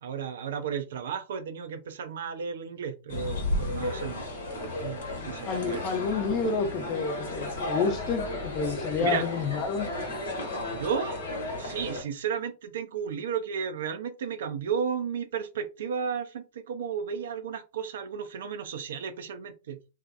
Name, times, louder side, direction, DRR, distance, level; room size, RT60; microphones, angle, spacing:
voice 1, 0.0-4.2 4.8-5.8 9.0-9.2 10.7-11.2 11.6-19.8, right 7 dB, 65° right, 0.4 m, -33 dB
sound 1, 3.1-12.0, left 1 dB, 70° left, 1.0 m, -33 dB
voice 2, 5.5-9.9, left 5 dB, 35° left, 0.7 m, -29 dB
2.5 x 2.1 x 2.5 m
figure-of-eight pair, 100°, 0 cm